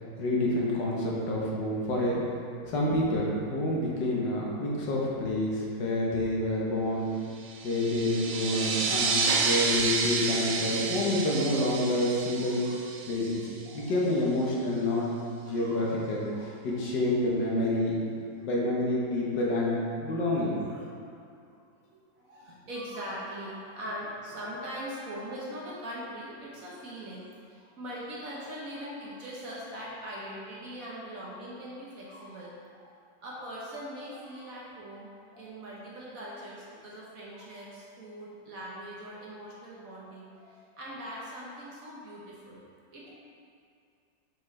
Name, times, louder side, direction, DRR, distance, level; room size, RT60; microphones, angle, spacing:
voice 1, 0.2-2.2 2.6-7.1 7.6-12.6 13.1-13.4 13.7-15.1 15.4-16.2 16.6-18.0 18.4-20.6, left 1 dB, 70° left, -4 dB, 1.7 m, -28 dB
sound 1, 7.5-13.7, right 4 dB, 80° right, 1.2 m, -30 dB
voice 2, 12.3-12.8 13.6-13.9 15.5-16.5 16.7-16.8 17.2-17.3 20.1-20.2 20.7-20.9 21.9-42.6 42.9-43.1, equal, 55° right, -5 dB, 1.4 m, -42 dB
7.2 x 4.7 x 3.2 m, 2.4 s
omnidirectional pair, 2.0 m